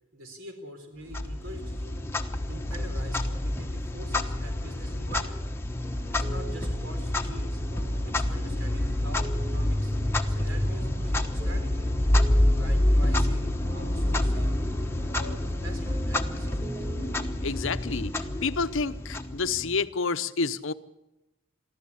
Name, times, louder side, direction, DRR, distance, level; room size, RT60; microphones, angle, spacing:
voice 1, 0.1-2.0 2.5-5.4 6.1-7.6 8.0-11.9 12.5-14.6 15.1-16.7, equal, 65° right, 5 dB, 4.0 m, -45 dB
Clock, 1.1-19.8, left 1 dB, 10° left, 1.1 m, -28 dB
sound 1, 5.8-17.3, right 2 dB, 30° right, 2.1 m, -43 dB
voice 2, 17.4-20.7, left 4 dB, 60° left, 12 dB, 0.9 m, -29 dB
23.5 x 14.5 x 8.6 m, 0.98 s
head